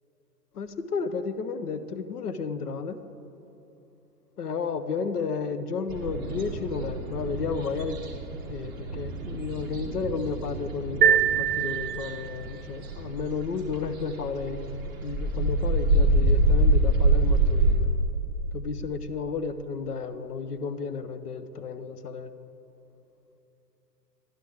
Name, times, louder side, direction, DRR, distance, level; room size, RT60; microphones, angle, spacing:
voice 1, 0.5-3.0 4.4-8.0 8.5-17.9 18.5-22.3, left 5 dB, 65° left, 12 dB, 0.7 m, -32 dB
sound 1, 5.9-17.7, right 1 dB, 15° right, 0.6 m, -26 dB
sound 2, 11.0-12.5, right 9 dB, 65° right, 0.6 m, -23 dB
11.5 x 10.0 x 3.4 m, 3.0 s
figure-of-eight pair, 120°, 49 cm